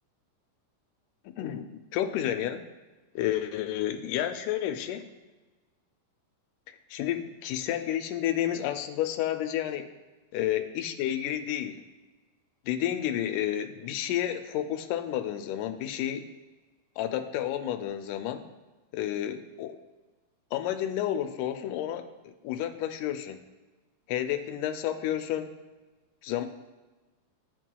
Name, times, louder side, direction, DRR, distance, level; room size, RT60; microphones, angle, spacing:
voice 1, 1.3-2.6 3.2-5.1 6.9-9.9 10.3-11.8 12.7-16.3 17.0-18.4 18.9-19.8 20.5-23.4 24.1-25.5 26.2-26.5, left 11 dB, 80° left, 7 dB, 2.0 m, -31 dB
13.0 x 4.5 x 2.2 m, 1.2 s
omnidirectional pair, 3.8 m